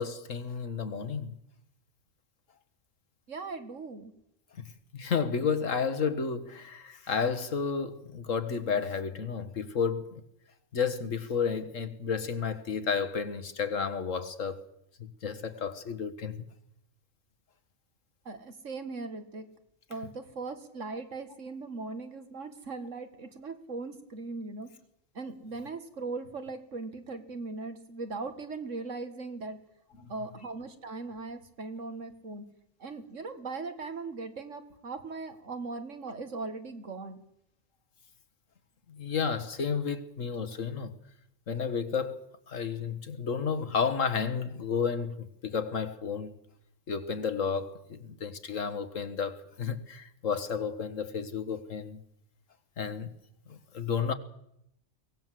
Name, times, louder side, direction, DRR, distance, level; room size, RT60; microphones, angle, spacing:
voice 1, 0.0-1.3 4.9-10.2 10.7-14.6 15.0-16.4 30.0-30.1 38.9-40.9 41.5-46.3 46.9-52.0 52.8-53.1 53.5-54.1, left 6 dB, 80° left, 1.9 m, -32 dB
voice 2, 3.3-4.1 18.3-19.5 19.9-24.7 25.1-29.6 30.1-32.4 32.8-37.2, right 3 dB, 75° right, 2.2 m, -39 dB
23.0 x 18.0 x 7.7 m
omnidirectional pair, 1.3 m